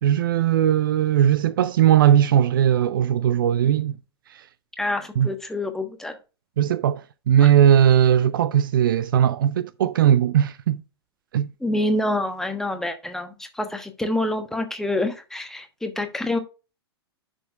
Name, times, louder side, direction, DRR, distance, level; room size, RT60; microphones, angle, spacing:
voice 1, 0.0-4.0 4.3-4.4 5.2-5.3 6.6-10.8 11.3-11.5, right 10 dB, 55° right, 0.5 m, -19 dB
voice 2, 4.8-6.2 11.6-16.4, left 1 dB, 5° left, 1.2 m, -27 dB
10.5 x 6.3 x 2.4 m
figure-of-eight pair, 100°, 14 cm